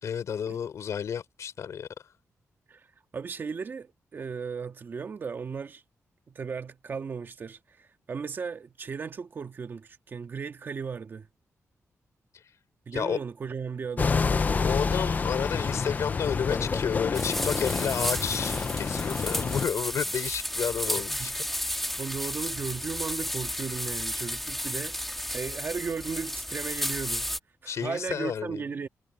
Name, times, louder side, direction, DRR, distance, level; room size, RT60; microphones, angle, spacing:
voice 1, 0.0-1.9 12.9-13.2 14.6-21.3 27.7-28.6, left 7 dB, 65° left, 4.1 m, -31 dB
voice 2, 3.1-5.8 6.3-11.3 12.9-14.2 20.9-21.4 22.0-27.3 27.6-28.9, right 5 dB, 40° right, 1.8 m, -36 dB
sound 1, 14.0-19.7, left 5 dB, 30° left, 0.7 m, -28 dB
sound 2, 17.1-27.4, equal, 5° left, 2.2 m, -33 dB
wide cardioid pair, 180°, 5 cm